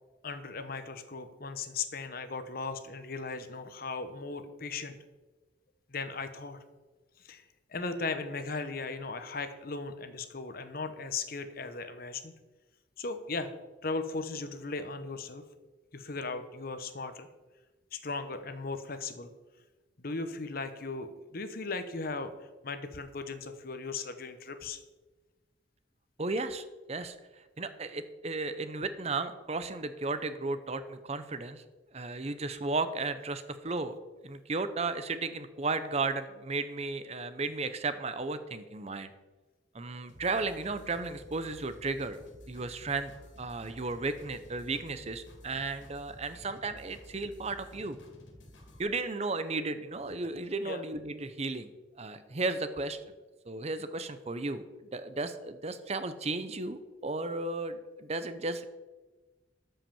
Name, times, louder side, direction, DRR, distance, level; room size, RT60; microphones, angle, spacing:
voice 1, 0.2-5.0 5.9-6.6 7.2-7.4 7.7-12.3 13.0-13.5 13.8-15.4 15.9-17.3 17.9-19.3 20.0-22.3 22.6-24.8 50.6-50.8, left 4 dB, 50° left, 9 dB, 1.0 m, -37 dB
voice 2, 26.2-27.2 27.6-31.6 31.9-33.9 34.2-39.1 39.7-42.2 42.5-43.1 43.4-48.0 48.8-51.7 52.0-53.0 53.5-54.7 54.9-58.6, right 3 dB, 35° right, 11 dB, 0.7 m, -34 dB
sound 1, 40.1-48.8, left 1 dB, 85° left, 2.4 m, -53 dB
13.0 x 5.7 x 7.1 m, 1.2 s
head